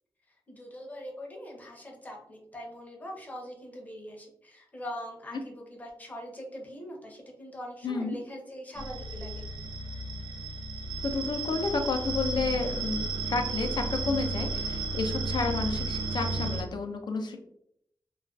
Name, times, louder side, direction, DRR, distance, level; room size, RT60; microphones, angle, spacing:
voice 1, 0.3-9.4, equal, 20° left, -1 dB, 0.6 m, -42 dB
voice 2, 7.8-8.2 11.0-17.4, left 3 dB, 65° left, 5 dB, 0.4 m, -31 dB
sound 1, 8.7-16.6, right 3 dB, 70° right, 0.4 m, -33 dB
2.3 x 2.2 x 2.3 m, 0.73 s
wide cardioid pair, 105°, 8 cm